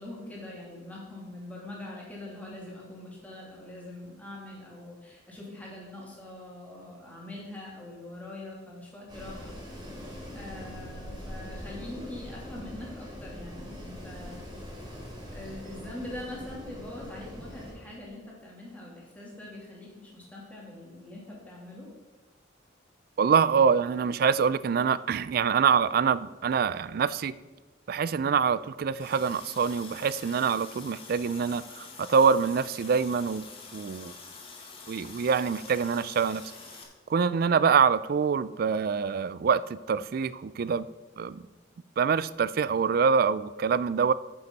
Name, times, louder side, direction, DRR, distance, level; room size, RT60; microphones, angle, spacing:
voice 1, 0.0-9.9 10.3-14.4 15.3-21.9, left 1 dB, 10° left, -4 dB, 2.8 m, -43 dB
Wind, 9.1-17.7, equal, 25° right, 3.3 m, -42 dB
voice 2, 23.2-27.3 27.9-33.5 33.7-34.1 34.9-36.4 37.1-40.9 41.2-41.4 42.0-44.1, right 6 dB, 50° right, 17 dB, 0.3 m, -25 dB
Water tap faucet, 29.0-36.8, left 4 dB, 30° left, 1.5 m, -46 dB
9.5 x 6.8 x 5.4 m, 1.2 s
head